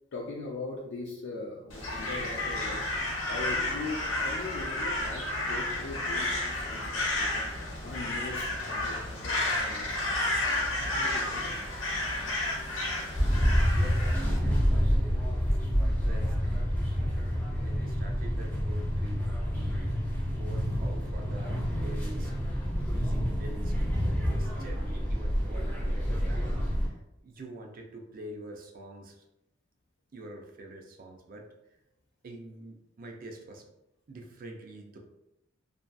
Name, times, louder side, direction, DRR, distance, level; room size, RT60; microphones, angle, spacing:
voice 1, 0.1-2.9 3.3-7.5 7.8-10.4 10.7-11.5, left 3 dB, 60° left, -3 dB, 0.4 m, -40 dB
Crow, 1.7-14.4, left 2 dB, 90° left, 0.7 m, -31 dB
sound 1, 13.2-26.9, equal, 10° left, 0.5 m, -28 dB
voice 2, 13.6-16.7 17.0-19.9 20.3-22.3 22.9-26.5 26.8-29.2 30.1-31.5 32.2-33.6 34.1-35.0, right 1 dB, 50° right, 2 dB, 0.4 m, -46 dB
2.6 x 2.4 x 2.2 m, 0.87 s
head